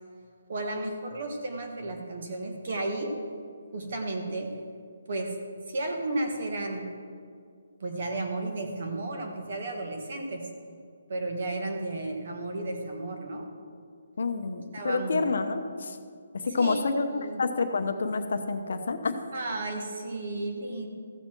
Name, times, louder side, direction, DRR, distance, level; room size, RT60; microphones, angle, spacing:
voice 1, 0.5-3.1 3.7-4.5 5.1-5.3 5.7-6.9 7.8-10.5 11.1-13.5 14.7-15.2 16.6-16.8 17.1-17.4 19.3-20.9, right 2 dB, 45° right, 3 dB, 1.5 m, -33 dB
voice 2, 14.2-16.0 16.3-19.2, left 4 dB, 60° left, 7 dB, 0.8 m, -28 dB
15.0 x 7.0 x 4.5 m, 2.2 s
hypercardioid pair, 175°, 0 cm